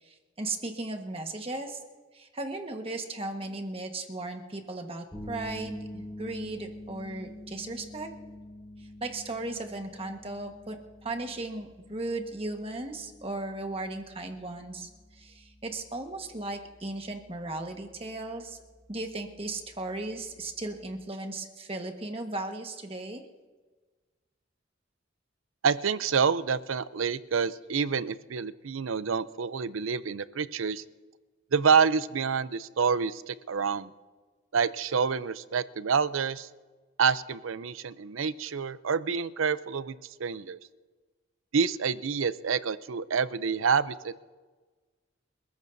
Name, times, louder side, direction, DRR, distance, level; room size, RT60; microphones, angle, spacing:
voice 1, 0.0-1.8 2.1-8.1 8.8-10.8 11.0-18.6 18.9-23.2, right 2 dB, 30° right, 4 dB, 1.4 m, -36 dB
sound 1, 5.1-21.0, left 1 dB, 20° left, 4.3 m, -47 dB
voice 2, 25.6-30.8 31.5-33.9 34.5-36.5 37.0-39.9 40.2-40.6 41.5-44.1, right 6 dB, 90° right, 15 dB, 0.6 m, -27 dB
27.5 x 14.0 x 2.7 m, 1.3 s
head